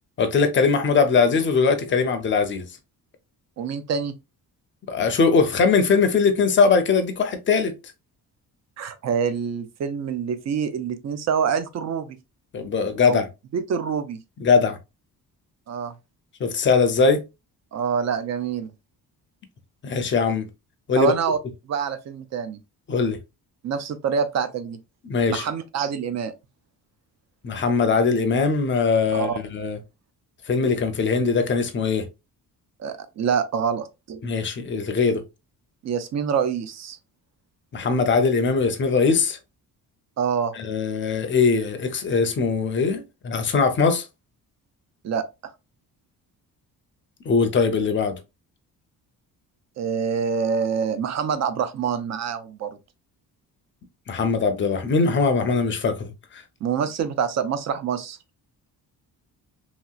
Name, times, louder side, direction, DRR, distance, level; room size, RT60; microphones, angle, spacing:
voice 1, 0.2-2.7 4.9-7.7 12.5-13.2 14.4-14.8 16.4-17.2 19.8-20.5 20.9-21.1 22.9-23.2 25.0-25.5 27.4-29.8 30.5-32.1 34.2-35.2 37.7-39.4 40.6-44.1 47.3-48.2 54.1-56.4, left 5 dB, 30° left, 0.5 m, -21 dB
voice 2, 3.6-4.1 8.8-12.2 13.0-13.2 13.5-14.2 15.7-15.9 17.7-18.7 21.0-21.4 21.7-22.6 23.6-24.8 25.3-26.3 29.1-29.4 32.8-34.2 35.8-37.0 40.2-40.5 45.0-45.2 49.8-52.7 56.6-58.2, right 7 dB, 45° right, 0.5 m, -26 dB
2.9 x 2.9 x 2.3 m
cardioid pair, 155°, 38 cm